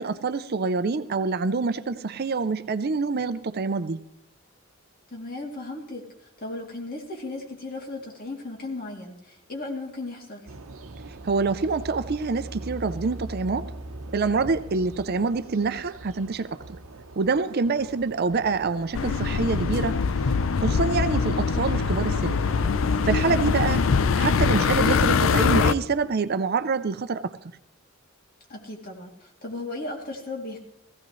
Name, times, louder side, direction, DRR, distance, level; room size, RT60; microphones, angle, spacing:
voice 1, 0.0-4.0 11.2-13.7 14.1-16.5 17.2-20.0 20.6-22.4 23.1-23.8 24.2-27.4, right 4 dB, 50° right, 12 dB, 0.6 m, -26 dB
voice 2, 5.1-6.1 6.4-10.5 23.3-23.6 28.5-30.6, left 2 dB, 45° left, 0 dB, 2.8 m, -36 dB
sound 1, 10.5-24.8, right 2 dB, 90° right, 0.9 m, -41 dB
sound 2, 18.9-25.7, left 5 dB, 70° left, 0.5 m, -23 dB
17.5 x 15.5 x 3.2 m, 0.81 s
head